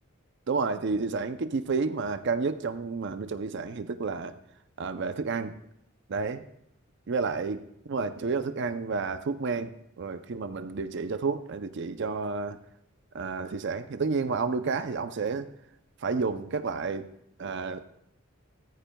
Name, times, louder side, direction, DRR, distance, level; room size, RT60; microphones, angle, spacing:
voice 1, 0.5-4.3 4.8-5.5 6.1-6.4 7.1-9.7 10.0-12.6 13.1-15.5 16.0-17.1 17.4-17.8, right 4 dB, 55° right, 10 dB, 0.5 m, -30 dB
14.5 x 14.0 x 2.2 m, 0.76 s
head